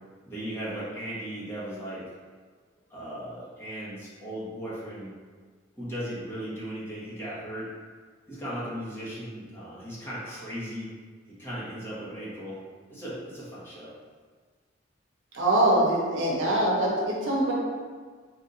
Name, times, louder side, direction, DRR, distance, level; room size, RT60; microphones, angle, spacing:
voice 1, 0.3-2.1 2.9-5.1 5.8-7.7 8.3-10.9 11.3-12.6 12.9-13.9, equal, 15° left, -9 dB, 1.2 m, -37 dB
voice 2, 15.3-17.5, right 1 dB, 70° right, -4 dB, 1.0 m, -23 dB
4.0 x 2.7 x 3.9 m, 1.6 s
head